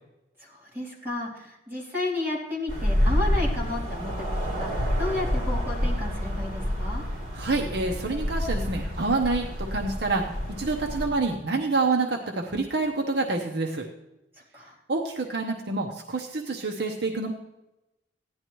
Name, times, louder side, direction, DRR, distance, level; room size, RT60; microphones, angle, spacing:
voice 1, 0.4-7.0 14.5-14.7, left 2 dB, 10° right, -7 dB, 3.2 m, -33 dB
sound 1, 2.7-11.1, equal, 40° right, 3.5 m, -28 dB
voice 2, 7.3-13.9 14.9-17.3, right 3 dB, 60° right, 2 dB, 0.8 m, -27 dB
15.5 x 10.5 x 3.1 m, 0.95 s
head